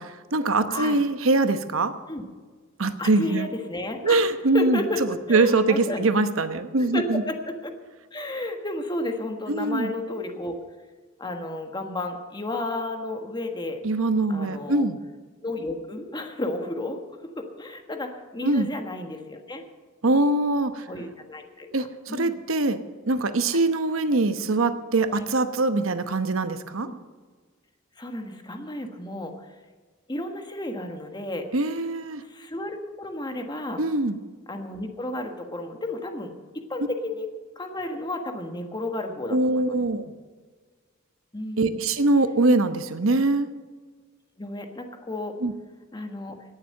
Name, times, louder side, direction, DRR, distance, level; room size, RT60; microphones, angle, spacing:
voice 1, 0.0-1.9 2.8-3.5 4.0-4.8 5.3-7.2 9.5-9.9 13.8-15.0 18.4-18.7 20.0-20.8 21.7-22.8 23.1-26.9 31.5-32.2 33.8-34.2 39.3-40.1 41.6-43.5 45.4-45.5, right 2 dB, 75° right, 10 dB, 0.9 m, -23 dB
voice 2, 0.7-1.0 2.1-2.2 3.0-4.3 4.5-5.0 5.3-6.1 6.8-7.7 8.1-10.6 11.2-13.8 14.3-14.9 15.4-17.0 17.4-19.6 20.9-22.4 25.1-25.2 26.8-26.9 28.0-29.3 30.1-31.4 32.2-33.8 34.5-37.3 37.6-39.8 41.3-41.8 44.4-45.3 45.9-46.4, left 2 dB, 20° left, 5 dB, 1.4 m, -32 dB
18.0 x 7.4 x 6.5 m, 1.4 s
head